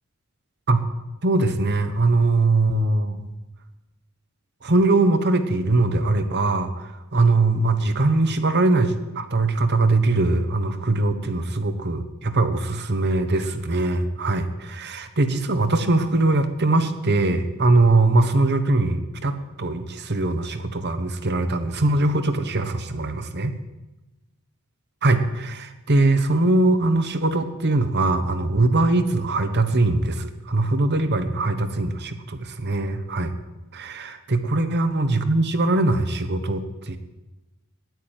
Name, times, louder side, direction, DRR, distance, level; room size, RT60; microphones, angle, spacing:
voice 1, 1.2-3.3 4.6-23.5 25.0-33.3 33.7-37.0, right 2 dB, 50° right, 9 dB, 1.1 m, -21 dB
9.9 x 9.4 x 8.9 m, 1.1 s
head